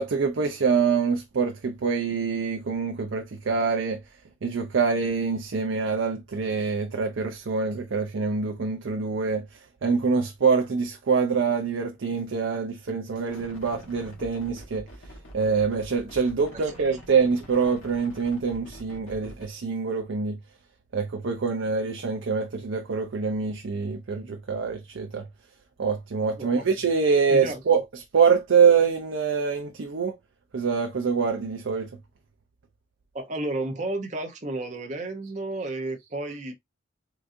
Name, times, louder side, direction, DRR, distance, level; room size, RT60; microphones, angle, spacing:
voice 1, 0.0-4.0 4.4-9.4 9.8-14.9 15.3-20.4 20.9-25.3 25.8-27.8 28.1-30.2 30.5-31.9, right 5 dB, 75° right, 0.5 m, -25 dB
sound 1, 13.3-19.5, equal, 75° left, 1.4 m, -46 dB
voice 2, 16.5-17.0 26.4-26.7 27.3-27.6 33.1-36.6, right 2 dB, 35° right, 0.7 m, -32 dB
3.8 x 2.5 x 2.5 m
head